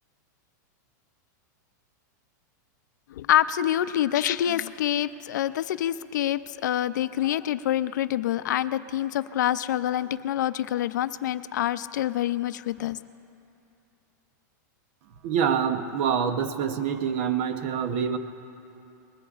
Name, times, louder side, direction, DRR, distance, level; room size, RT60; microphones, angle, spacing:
voice 1, 3.1-13.0, left 12 dB, 75° left, 13 dB, 0.5 m, -26 dB
voice 2, 15.2-18.2, right 7 dB, 40° right, 10 dB, 0.7 m, -26 dB
24.0 x 21.0 x 2.4 m, 2.7 s
supercardioid pair, 175°, 10 cm